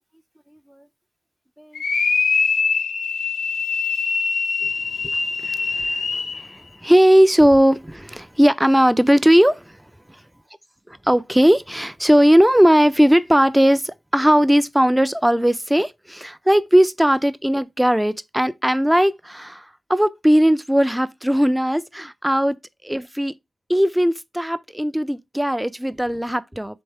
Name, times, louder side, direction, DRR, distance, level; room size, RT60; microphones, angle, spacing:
sound 1, 1.7-6.5, left 5 dB, 70° left, 0.5 m, -23 dB
voice 1, 5.0-9.8 10.9-22.6 22.8-23.3 23.7-26.8, equal, 5° right, 0.3 m, -18 dB
4.3 x 3.5 x 3.3 m
wide cardioid pair, 95°, 0 cm